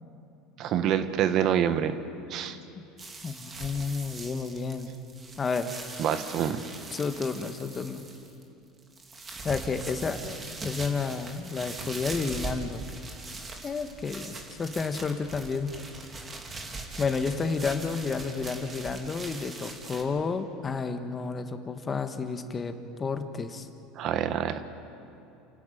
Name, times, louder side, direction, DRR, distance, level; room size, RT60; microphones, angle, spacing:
voice 1, 0.6-1.9 2.3-2.6 6.0-6.6 23.9-24.6, right 9 dB, 50° right, 10 dB, 1.3 m, -26 dB
sound 1, 3.0-8.4 8.8-20.0, right 3 dB, 25° right, 3.0 m, -41 dB
voice 2, 3.2-4.9 5.4-5.7 6.9-8.0 9.4-12.8 13.6-15.7 17.0-23.7, left 4 dB, 25° left, 8 dB, 1.5 m, -31 dB
29.0 x 12.0 x 9.2 m, 2.8 s
supercardioid pair, 110°, 0 cm